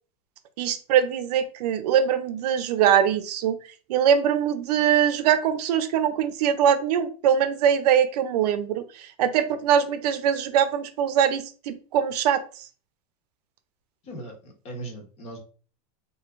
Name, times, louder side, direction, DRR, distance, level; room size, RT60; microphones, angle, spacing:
voice 1, 0.6-3.6 3.9-12.6, right 9 dB, 75° right, 10 dB, 0.6 m, -22 dB
voice 2, 14.0-15.4, right 2 dB, 30° left, 1 dB, 1.1 m, -38 dB
3.0 x 2.7 x 3.6 m, 0.39 s
supercardioid pair, 160°, 21 cm